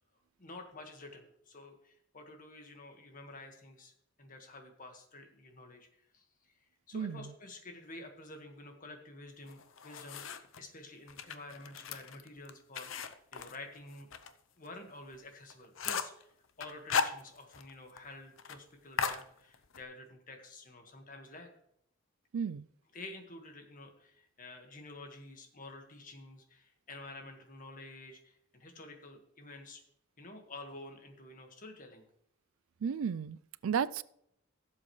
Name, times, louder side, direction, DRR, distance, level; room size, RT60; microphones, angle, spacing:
voice 1, 0.4-3.9 4.2-6.5 6.9-14.1 14.6-21.5 22.9-29.8 30.2-32.0, left 2 dB, 40° left, 1.7 m, -50 dB
sound 1, 9.5-10.6 11.1-14.3 14.7-14.8 15.1-15.2 15.5-16.2 16.6-17.7 18.0-18.1 18.4-18.6 19.0-19.8, left 6 dB, 75° left, 0.7 m, -36 dB
voice 2, 22.3-22.7 32.8-33.4 33.6-34.0, right 7 dB, 90° right, 0.4 m, -33 dB
16.0 x 7.6 x 3.2 m
head